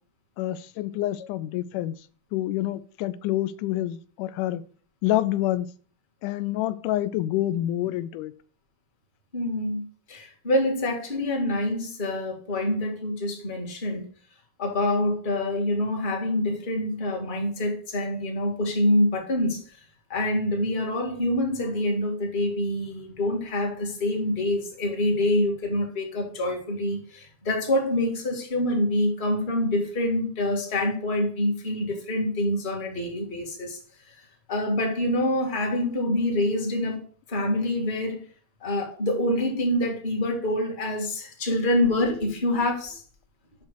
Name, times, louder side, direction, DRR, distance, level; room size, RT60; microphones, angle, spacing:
voice 1, 0.4-2.0 2.3-4.6 5.0-5.7 6.2-8.3, left 14 dB, 85° left, 14 dB, 2.1 m, -27 dB
voice 2, 9.3-9.8 10.1-14.1 14.6-19.8 20.1-34.2 34.5-38.3 38.6-43.0, left 1 dB, 20° left, 1 dB, 1.5 m, -26 dB
6.7 x 5.7 x 6.2 m, 0.41 s
omnidirectional pair, 3.6 m